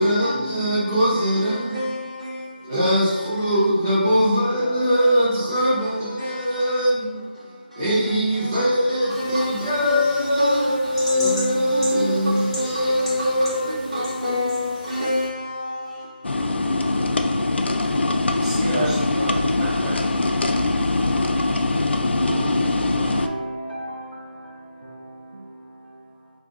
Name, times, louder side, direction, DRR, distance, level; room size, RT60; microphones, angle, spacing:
voice 1, 0.0-2.2 2.6-14.1, equal, 20° right, 0.6 m, -22 dB
voice 2, 1.5-2.7 5.6-5.7 6.2-6.6 7.4-8.5 8.9-11.2 11.5-17.1 17.4-17.7 18.4-20.0, left 1 dB, 35° right, 1.1 m, -30 dB
sound 1, 9.1-15.3, equal, 30° left, 0.9 m, -37 dB
sound 2, 16.2-23.3, left 2 dB, 90° left, 0.4 m, -22 dB
voice 3, 22.2-26.3, right 1 dB, 65° right, 0.6 m, -34 dB
5.2 x 2.4 x 2.4 m
figure-of-eight pair, 180°, 6 cm